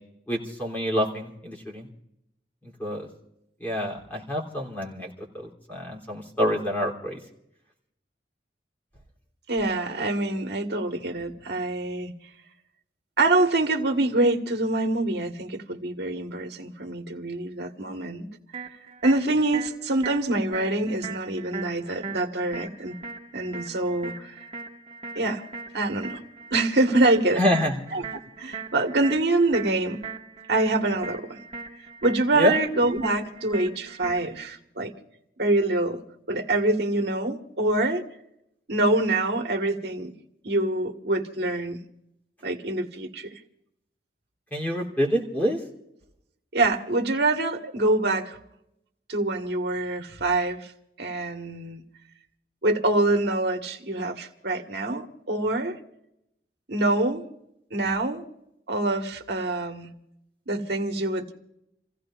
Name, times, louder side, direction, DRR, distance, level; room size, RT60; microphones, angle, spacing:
voice 1, 0.3-1.9 2.8-3.1 3.6-5.1 5.7-7.2 27.4-27.7 32.3-32.5 44.5-45.6, equal, 10° left, 3.1 m, -26 dB
voice 2, 9.5-12.1 13.2-18.3 19.0-22.9 23.3-24.3 25.1-25.4 25.7-26.2 26.5-27.4 27.9-28.0 28.4-30.0 30.5-31.4 32.0-34.9 35.4-36.0 36.3-38.0 38.7-40.1 40.4-41.8 42.4-43.4 46.5-48.4 49.1-50.7 51.0-51.8 52.6-55.8 56.7-57.2 57.7-58.2 58.7-59.9 60.5-61.3, right 2 dB, 65° right, 1.6 m, -25 dB
sound 1, 18.5-34.5, right 5 dB, 30° right, 1.7 m, -40 dB
30.0 x 16.0 x 2.5 m
head